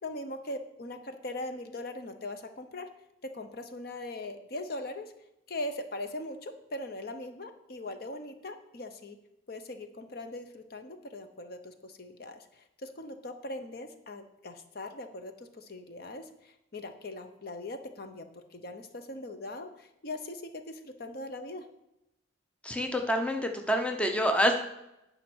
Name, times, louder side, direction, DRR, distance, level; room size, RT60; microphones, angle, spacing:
voice 1, 0.0-2.9 3.2-5.1 5.5-9.2 9.5-21.7, left 1 dB, 50° left, 8 dB, 0.8 m, -40 dB
voice 2, 22.6-24.6, equal, 5° left, 4 dB, 0.7 m, -27 dB
9.4 x 5.1 x 6.1 m, 0.89 s
head